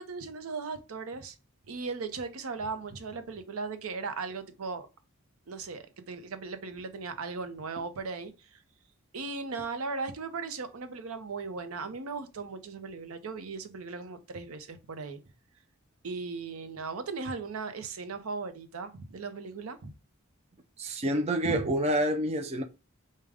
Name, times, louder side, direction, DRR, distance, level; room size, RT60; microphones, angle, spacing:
voice 1, 0.0-1.4 1.7-4.9 5.5-8.6 9.1-15.2 16.0-19.9 21.4-21.6, right 4 dB, 75° right, 0.6 m, -37 dB
voice 2, 20.8-22.6, right 1 dB, 30° right, 0.4 m, -28 dB
4.8 x 2.2 x 3.4 m
head